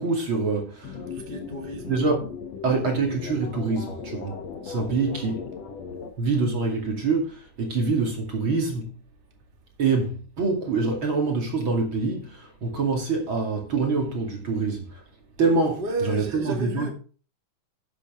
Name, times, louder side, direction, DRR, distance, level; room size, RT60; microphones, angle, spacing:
voice 1, 0.0-1.0 1.9-2.2 2.6-4.4 4.6-5.5 6.2-8.9 9.8-15.0 15.4-16.9, right 4 dB, 40° right, 2.8 m, -25 dB
sound 1, 0.8-6.1, left 6 dB, 60° left, 2.2 m, -37 dB
voice 2, 1.1-2.0 5.0-5.3 15.8-16.9, right 2 dB, 20° right, 1.8 m, -33 dB
11.5 x 8.7 x 3.6 m
omnidirectional pair, 3.7 m